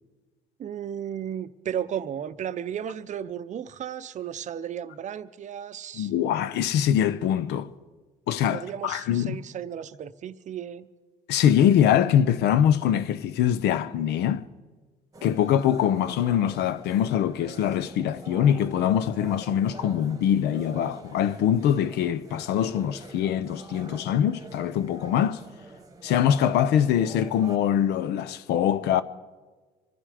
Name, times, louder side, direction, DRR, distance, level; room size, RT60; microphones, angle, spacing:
voice 1, 0.6-6.1 8.5-10.9, right 9 dB, 45° right, 0.6 m, -34 dB
voice 2, 5.9-7.7 8.3-9.4 11.3-14.5 15.2-25.4 26.0-29.0, left 9 dB, 80° left, 0.7 m, -23 dB
sound 1, 15.1-27.6, right 2 dB, 20° right, 1.2 m, -45 dB
25.0 x 11.0 x 4.9 m
cardioid pair, 110°, 17 cm